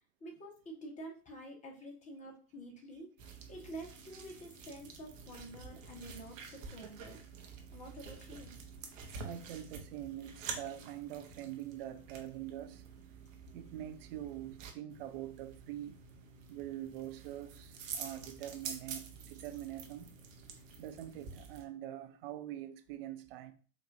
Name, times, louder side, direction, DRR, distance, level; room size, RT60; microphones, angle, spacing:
voice 1, 0.2-3.1 3.5-7.2 7.7-8.5, right 1 dB, 15° left, 1.1 m, -48 dB
sound 1, 3.2-21.6, right 5 dB, 60° right, 0.9 m, -48 dB
voice 2, 9.2-12.8 13.5-16.0 16.5-20.1 20.8-23.5, right 12 dB, 40° right, 0.5 m, -44 dB
4.7 x 2.6 x 2.6 m
figure-of-eight pair, 95°, 44 cm